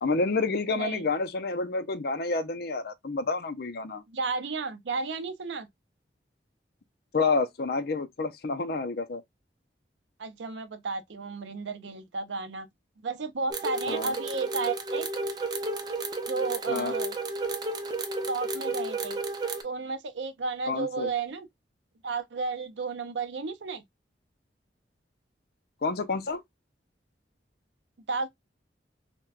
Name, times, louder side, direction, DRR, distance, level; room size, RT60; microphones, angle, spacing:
voice 1, 0.0-4.0 7.1-9.2 13.9-14.1 16.7-16.9 20.7-21.1 25.8-26.4, left 3 dB, 60° left, 0.6 m, -29 dB
voice 2, 0.7-1.1 4.1-5.7 10.2-12.7 13.0-15.1 16.3-17.1 18.3-19.2 19.6-21.5 22.0-23.8 28.1-28.3, right 4 dB, 85° right, 0.6 m, -33 dB
sound 1, 13.5-19.6, right 2 dB, 25° right, 0.5 m, -32 dB
4.2 x 2.2 x 2.3 m
head